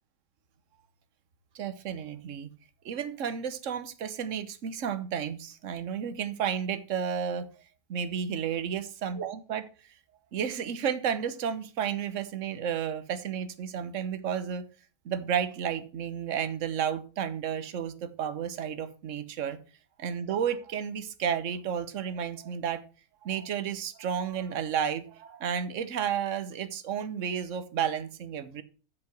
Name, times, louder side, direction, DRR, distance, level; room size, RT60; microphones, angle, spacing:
voice 1, 1.5-2.5 2.8-7.5 7.9-9.7 10.3-14.6 15.0-19.6 20.0-22.8 23.2-28.6, right 8 dB, 60° right, 1.2 m, -32 dB
7.7 x 7.5 x 5.9 m
omnidirectional pair, 1.6 m